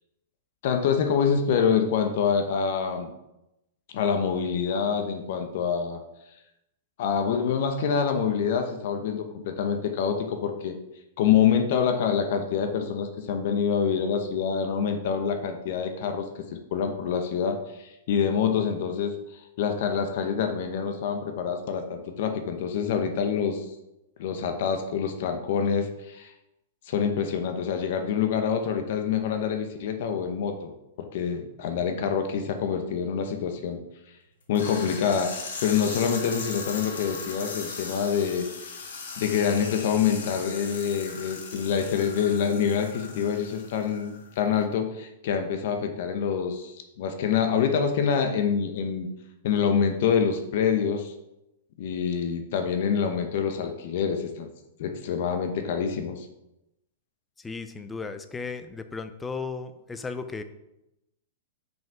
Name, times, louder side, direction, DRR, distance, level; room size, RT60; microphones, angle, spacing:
voice 1, 0.6-3.1 3.9-6.0 7.0-10.8 11.2-23.7 24.2-26.3 26.9-30.7 31.1-33.8 34.5-38.5 39.2-49.1 49.4-51.1 51.8-54.5 54.8-56.3, left 7 dB, 60° left, 6 dB, 0.9 m, -26 dB
sound 1, 34.5-44.3, left 4 dB, 80° left, 1.7 m, -38 dB
voice 2, 57.4-60.4, left 4 dB, 10° left, 9 dB, 0.5 m, -35 dB
5.8 x 5.3 x 4.6 m, 0.88 s
hypercardioid pair, 145°, 0 cm